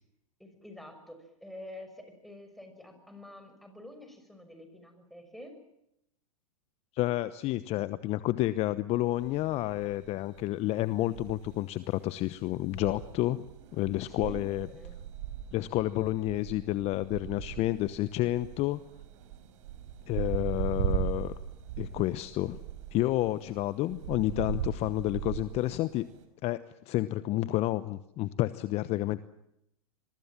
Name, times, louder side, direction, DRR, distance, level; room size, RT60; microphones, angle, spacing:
voice 1, 0.4-5.5 14.0-14.9, left 1 dB, ahead, 6 dB, 6.3 m, -48 dB
voice 2, 6.9-13.5 13.7-14.7 15.5-18.8 20.1-21.3 21.8-22.6 22.9-26.1 26.4-29.2, left 16 dB, 35° left, 14 dB, 1.0 m, -30 dB
sound 1, 9.2-26.2, right 10 dB, 60° right, 5.1 m, -39 dB
26.0 x 23.0 x 7.5 m, 0.80 s
hypercardioid pair, 110°, 18 cm